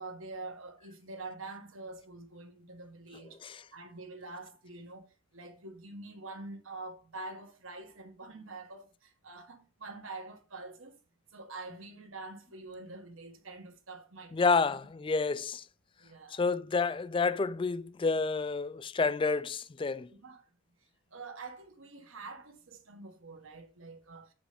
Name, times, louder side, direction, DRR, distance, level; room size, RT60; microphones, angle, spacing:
voice 1, 0.0-3.4 3.7-11.0 11.3-14.6 16.0-16.4 20.1-20.4 21.1-24.3, right 3 dB, 75° right, 1.4 m, -46 dB
voice 2, 14.3-15.6 16.3-20.1, left 4 dB, 25° left, 0.4 m, -29 dB
6.6 x 5.1 x 5.0 m
head